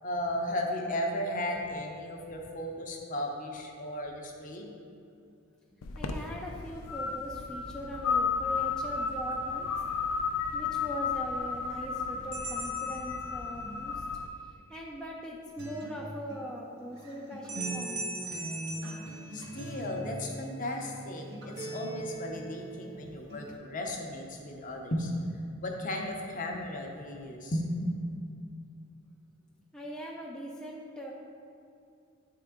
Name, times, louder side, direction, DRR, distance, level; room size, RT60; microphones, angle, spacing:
voice 1, 0.0-4.7 19.3-21.2 21.6-25.1 25.6-27.9, left 1 dB, 40° left, 1 dB, 0.7 m, -35 dB
sound 1, 5.8-14.3, left 5 dB, 85° left, 0.4 m, -33 dB
voice 2, 6.0-9.7 10.5-14.0 14.6-18.1 29.7-31.1, equal, 5° left, -4 dB, 0.3 m, -41 dB
sound 2, 12.3-13.9 17.5-20.0, right 2 dB, 40° right, 0.7 m, -40 dB
Acoustic guitar, 15.6-23.6, right 2 dB, 55° right, 1.1 m, -41 dB
8.5 x 3.7 x 3.5 m, 2.5 s
head